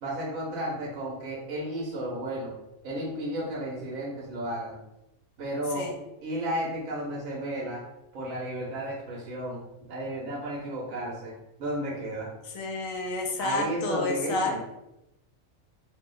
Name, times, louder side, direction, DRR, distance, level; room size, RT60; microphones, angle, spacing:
voice 1, 0.0-2.5 2.8-4.8 5.4-5.9 6.2-7.8 8.1-9.6 9.9-11.3 11.6-12.3 13.4-14.6, right 1 dB, 80° right, -5 dB, 1.2 m, -33 dB
voice 2, 12.5-14.6, left 2 dB, 85° left, 2 dB, 1.0 m, -30 dB
2.9 x 2.1 x 3.7 m, 0.89 s
omnidirectional pair, 1.4 m